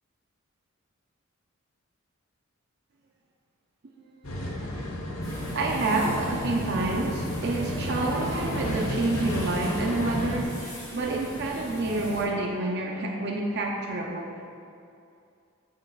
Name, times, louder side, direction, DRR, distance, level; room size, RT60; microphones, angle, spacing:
voice 1, 3.8-4.9 5.2-14.5, right 2 dB, 55° right, -1 dB, 0.6 m, -29 dB
sound 1, 4.2-10.4, equal, 80° left, 1.0 m, -32 dB
sound 2, 5.2-12.2, equal, 15° left, 1.6 m, -39 dB
10.0 x 6.6 x 2.4 m, 2.5 s
head